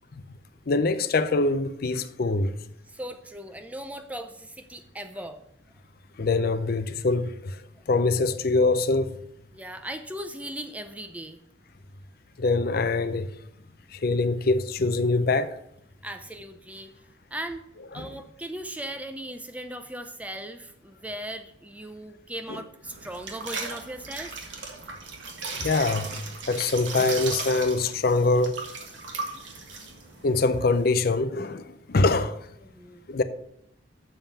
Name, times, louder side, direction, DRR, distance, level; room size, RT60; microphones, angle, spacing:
voice 1, 0.7-2.5 6.2-9.2 12.4-13.3 13.9-15.6 17.9-18.1 22.5-22.6 25.5-26.1 26.5-28.6 30.2-32.5 33.1-33.2, left 3 dB, 50° left, 0.5 m, -24 dB
voice 2, 2.9-5.4 9.5-11.4 16.0-16.9 17.3-17.6 17.9-24.4 32.7-33.2, right 1 dB, 5° right, 0.5 m, -38 dB
sound 1, 22.8-30.9, right 4 dB, 70° right, 1.6 m, -37 dB
7.1 x 5.5 x 7.1 m
head